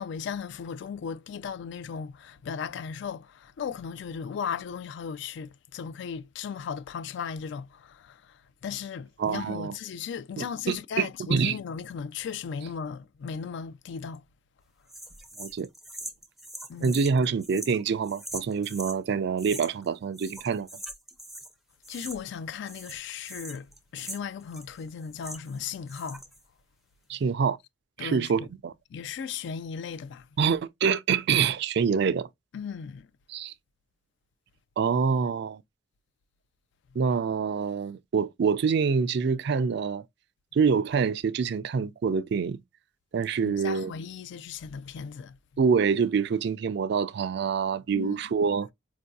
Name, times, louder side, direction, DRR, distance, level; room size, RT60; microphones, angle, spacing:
voice 1, 0.0-8.2 8.6-14.2 16.7-17.0 21.9-23.7 23.9-26.2 28.0-28.3 28.9-30.2 32.5-33.1 43.4-45.4 47.9-48.2, left 6 dB, 65° left, 0.3 m, -36 dB
voice 2, 9.2-9.7 10.4-11.6 15.4-15.7 16.8-20.7 27.1-27.6 28.0-28.7 30.4-32.3 33.3-33.5 34.8-35.6 37.0-40.0 40.5-42.6 43.1-43.9 45.6-48.7, right 6 dB, 60° right, 0.4 m, -26 dB
sound 1, 14.9-19.0 19.4-19.9 20.1-21.5 21.8-22.4 22.6-25.6 25.9-26.4, right 1 dB, ahead, 0.4 m, -42 dB
4.5 x 2.7 x 2.2 m
head